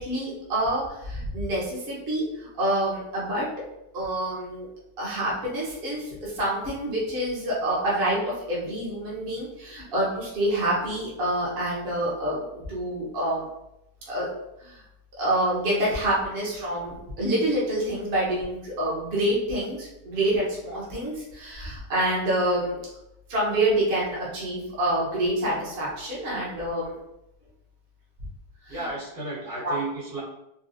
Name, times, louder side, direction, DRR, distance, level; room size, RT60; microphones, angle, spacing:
voice 1, 0.0-3.5 3.9-4.7 5.0-13.4 14.1-14.3 14.6-14.8 15.2-22.8 23.3-26.9 28.7-28.8 29.6-29.7, right 1 dB, 45° right, -6 dB, 0.9 m, -27 dB
voice 2, 28.7-30.2, right 2 dB, 70° right, -8 dB, 1.9 m, -33 dB
4.0 x 2.1 x 2.5 m, 0.85 s
omnidirectional pair, 1.8 m